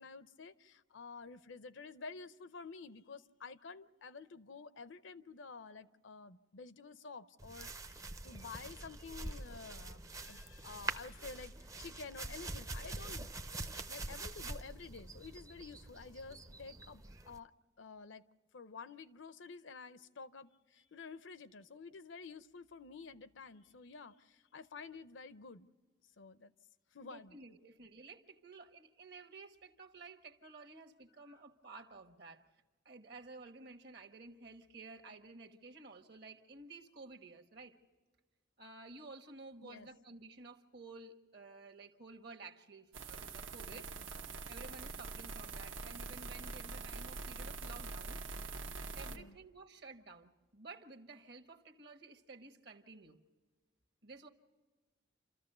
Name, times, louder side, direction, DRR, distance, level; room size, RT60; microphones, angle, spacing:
voice 1, 0.0-13.3 13.5-17.5 17.8-18.2 18.5-25.7 26.2-26.5 26.9-27.4 39.6-39.9 43.7-44.1 49.1-49.4, left 4 dB, 70° left, 14 dB, 0.6 m, -51 dB
sound 1, 7.4-17.4, right 2 dB, 15° right, 0.5 m, -45 dB
voice 2, 27.0-32.4 32.8-37.8 38.6-43.9 44.5-48.2 48.9-53.2 54.0-54.3, right 3 dB, 55° right, 5 dB, 1.3 m, -53 dB
sound 2, 42.9-49.2, right 3 dB, 80° right, 1.1 m, -44 dB
28.5 x 14.0 x 6.7 m, 1.3 s
head